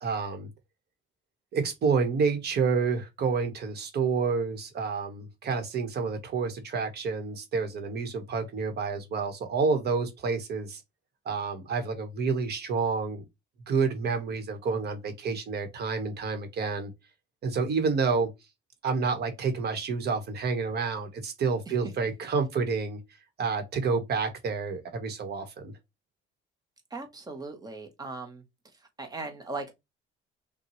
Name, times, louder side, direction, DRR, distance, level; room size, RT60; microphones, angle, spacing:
voice 1, 0.0-0.5 1.5-10.8 11.2-13.2 13.7-16.9 17.4-18.3 18.8-23.0 23.4-25.7, right 5 dB, 50° right, 1.1 m, -29 dB
voice 2, 26.9-28.4 29.0-29.7, right 3 dB, 20° right, 1.0 m, -38 dB
5.8 x 2.3 x 3.1 m
cardioid pair, 135°, 21 cm